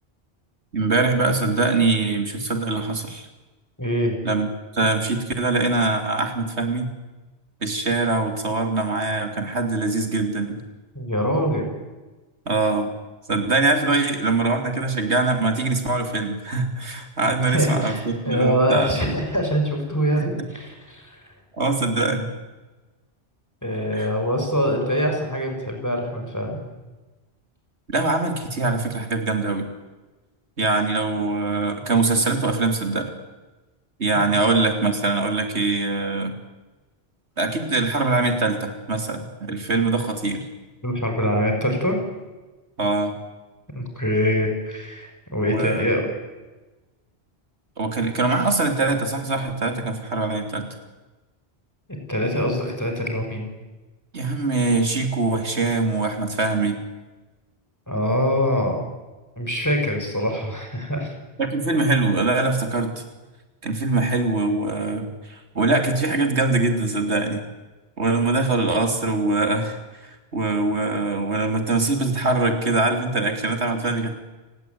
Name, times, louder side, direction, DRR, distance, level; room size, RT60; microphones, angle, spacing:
voice 1, 0.7-3.3 4.2-4.5 4.7-6.9 7.6-10.6 12.5-12.9 13.3-19.0 20.2-20.3 21.6-22.3 23.9-24.1 27.9-29.7 30.6-33.1 34.0-36.3 37.4-40.5 42.8-43.2 45.5-45.9 47.8-50.7 54.1-56.8 61.4-63.0 63.6-67.4 68.0-74.1, right 3 dB, 85° right, 6 dB, 3.4 m, -23 dB
voice 2, 3.8-4.2 11.0-11.7 17.4-21.2 23.6-26.6 40.8-42.0 43.7-46.0 52.1-53.5 57.9-58.8 59.4-61.1, equal, 15° left, 3 dB, 5.5 m, -24 dB
29.5 x 18.0 x 9.4 m, 1.2 s
omnidirectional pair, 1.1 m